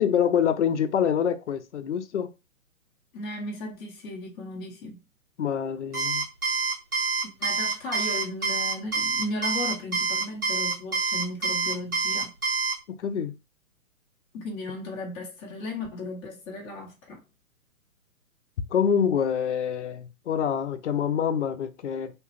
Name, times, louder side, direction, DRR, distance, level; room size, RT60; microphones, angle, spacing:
voice 1, 0.0-2.3 5.4-6.3 12.9-13.4 18.7-22.1, left 8 dB, 55° left, 0.6 m, -26 dB
voice 2, 3.1-5.0 7.2-12.3 14.3-17.2, left 2 dB, 15° left, 0.7 m, -36 dB
Alarm, 5.9-12.8, right 4 dB, 90° right, 1.4 m, -26 dB
2.9 x 2.3 x 3.1 m
figure-of-eight pair, 130°, 42 cm